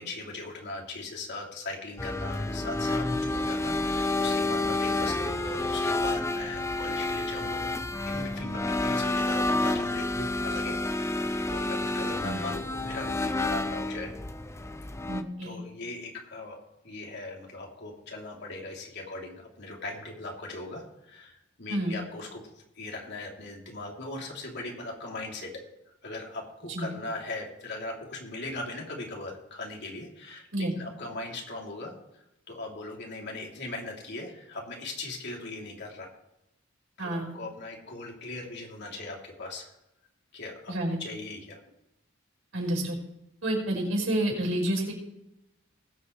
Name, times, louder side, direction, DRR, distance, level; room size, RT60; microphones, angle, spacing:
voice 1, 0.0-7.7 8.1-14.1 15.4-16.6 16.8-25.6 26.0-36.1 37.0-39.7 40.3-40.7 41.0-41.6, left 2 dB, 55° left, 0 dB, 3.0 m, -39 dB
sound 1, 2.0-15.2, left 2 dB, 15° left, 0.6 m, -29 dB
voice 2, 15.1-15.6 21.7-22.0 26.7-26.9 30.5-30.7 37.0-37.4 40.7-41.0 42.5-43.0 43.4-44.9, right 1 dB, 75° right, -1 dB, 5.0 m, -29 dB
20.5 x 8.2 x 3.2 m, 0.89 s
head